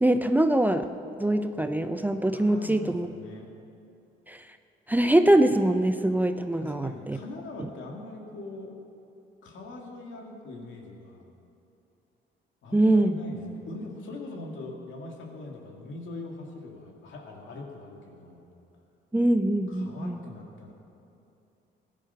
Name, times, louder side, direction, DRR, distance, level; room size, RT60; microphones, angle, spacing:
voice 1, 0.0-0.8 1.2-3.1 4.3-4.4 4.9-7.2 12.7-13.1 19.1-20.2, right 1 dB, 10° right, 8 dB, 0.5 m, -23 dB
voice 2, 2.3-3.5 6.5-8.7 9.4-11.2 12.6-18.5 19.7-20.7, left 2 dB, 75° left, 0 dB, 2.5 m, -42 dB
16.0 x 11.0 x 5.8 m, 2.9 s
cardioid pair, 90°, 20 cm